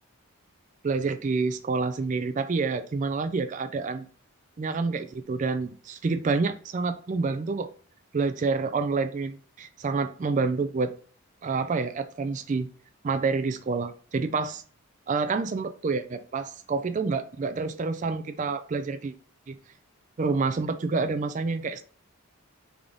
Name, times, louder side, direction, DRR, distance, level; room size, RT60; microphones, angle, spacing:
voice 1, 0.8-4.1 4.6-7.7 8.1-10.9 11.4-12.7 13.0-14.6 15.1-19.1 19.5-19.6 20.2-21.8, right 4 dB, 35° right, 0.3 m, -28 dB
3.5 x 3.5 x 3.7 m
head